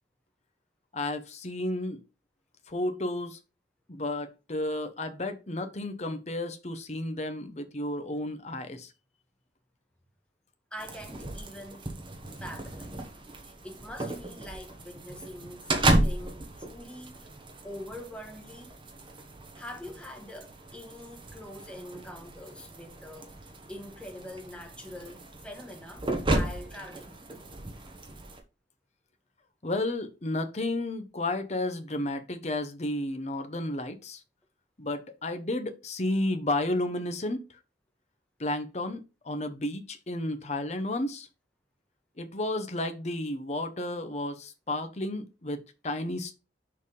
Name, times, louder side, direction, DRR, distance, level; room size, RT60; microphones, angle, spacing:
voice 1, 0.9-2.0 2.7-3.4 3.9-8.9 29.6-34.2 34.8-37.4 38.4-41.3 42.2-46.4, left 1 dB, 40° left, 0.9 m, -32 dB
voice 2, 10.7-11.9 12.4-13.0 13.4-17.3 17.6-18.7 19.5-27.1, left 1 dB, 5° left, 1.2 m, -44 dB
sound 1, 10.8-28.4, right 1 dB, 25° right, 1.1 m, -34 dB
6.6 x 3.4 x 5.3 m
head